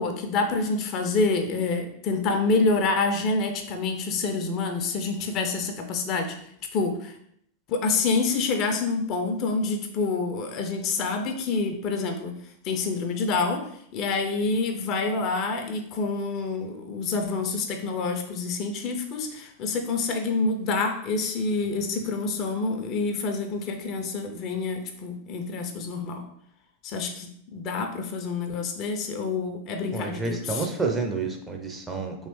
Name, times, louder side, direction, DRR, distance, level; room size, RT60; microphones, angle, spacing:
voice 1, 0.0-6.4 6.7-7.2 7.7-12.3 12.6-26.2 26.8-30.7, left 3 dB, 35° left, 5 dB, 0.4 m, -27 dB
voice 2, 29.9-32.2, right 4 dB, 15° right, 2 dB, 0.5 m, -29 dB
3.0 x 2.9 x 3.0 m, 0.68 s
figure-of-eight pair, 90°, 0 cm